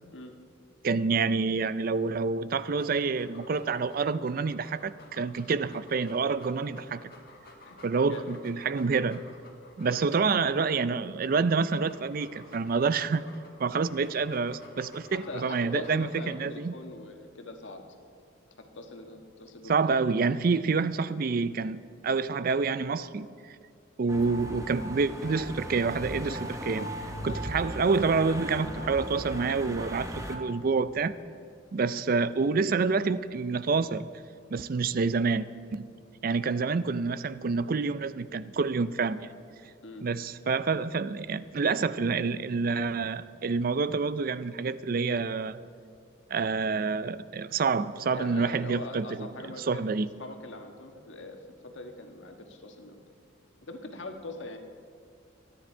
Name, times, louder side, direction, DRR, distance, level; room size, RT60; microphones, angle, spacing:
voice 1, 0.8-7.1 7.8-9.2 9.8-13.2 13.6-16.7 19.7-23.6 24.0-26.9 27.2-31.2 31.7-34.1 34.5-35.9 36.2-39.3 40.0-45.6 46.3-49.3 49.7-50.1, right 4 dB, 50° right, 15 dB, 0.4 m, -28 dB
Dog, 2.5-10.7 11.3-16.7, left 2 dB, 50° left, 1.9 m, -53 dB
voice 2, 15.1-17.8 18.6-19.7 27.3-27.5 31.9-32.1 39.8-40.0 48.1-49.9 50.2-53.0 53.6-54.6, left 2 dB, 75° left, 4 dB, 1.4 m, -42 dB
sound 1, 24.1-30.4, equal, 15° right, 1.1 m, -37 dB
24.0 x 10.0 x 4.5 m, 2.4 s
head